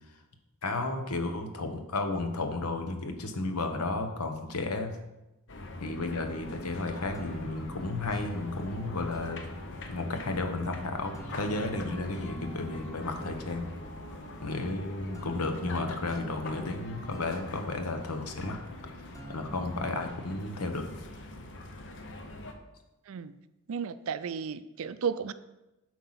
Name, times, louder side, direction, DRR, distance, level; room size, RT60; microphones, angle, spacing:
voice 1, 0.6-5.0 5.8-9.5 9.9-13.7 14.4-18.6 19.3-21.1, left 2 dB, 85° left, 5 dB, 1.0 m, -33 dB
sound 1, 5.5-22.5, left 2 dB, 55° left, 0.8 m, -44 dB
sound 2, 6.2-20.1, equal, 15° left, 1.2 m, -47 dB
voice 2, 23.7-25.3, right 6 dB, 65° right, 13 dB, 0.4 m, -33 dB
7.9 x 4.7 x 5.7 m, 0.99 s
head